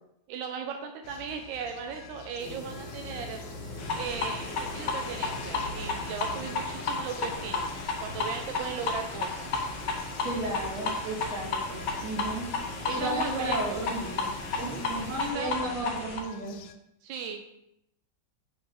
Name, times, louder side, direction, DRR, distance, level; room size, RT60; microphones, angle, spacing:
voice 1, 0.3-3.4 3.9-7.7 8.0-9.5 12.9-13.6 14.5-14.8 15.2-15.5 17.0-17.6, right 6 dB, 90° right, 4 dB, 1.4 m, -37 dB
sound 1, 1.0-16.7, left 5 dB, 85° left, 1.4 m, -47 dB
sound 2, 2.4-15.3, left 1 dB, 35° left, 1.5 m, -43 dB
sound 3, 3.8-16.2, left 3 dB, 70° left, 1.5 m, -33 dB
voice 2, 10.2-12.5 12.9-16.6, right 1 dB, 55° right, -4 dB, 2.4 m, -34 dB
5.6 x 5.5 x 3.7 m, 0.79 s
omnidirectional pair, 2.0 m